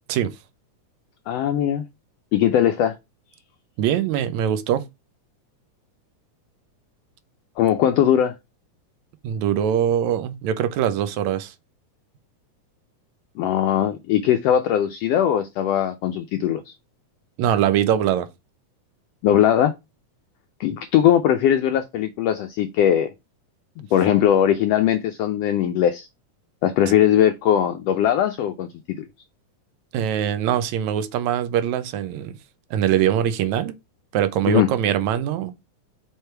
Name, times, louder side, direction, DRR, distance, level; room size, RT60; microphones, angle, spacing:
voice 1, 1.3-1.8 2.3-2.9 7.6-8.3 13.4-16.7 19.2-19.7 20.6-23.1 23.8-26.1 26.6-28.7 29.0-29.1 34.5-34.7, left 10 dB, 80° left, 1.4 m, -20 dB
voice 2, 3.8-4.9 9.2-11.5 17.4-18.3 29.9-32.4 32.7-33.8 34.1-35.5, right 10 dB, 80° right, 2.0 m, -22 dB
6.5 x 3.3 x 4.5 m
omnidirectional pair, 3.5 m